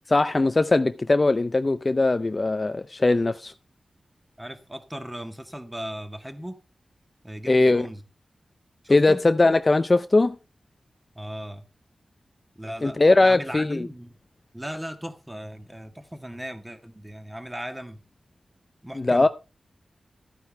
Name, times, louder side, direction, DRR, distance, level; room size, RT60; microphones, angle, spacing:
voice 1, 0.1-3.5 7.5-7.9 8.9-10.4 12.8-13.9 19.0-19.3, left 2 dB, 30° left, 0.5 m, -20 dB
voice 2, 4.4-6.6 7.2-8.0 8.8-9.2 11.2-11.6 12.6-14.1 14.5-18.0 18.8-19.3, equal, 10° right, 1.7 m, -37 dB
13.5 x 9.3 x 3.4 m
wide cardioid pair, 130°, 0 cm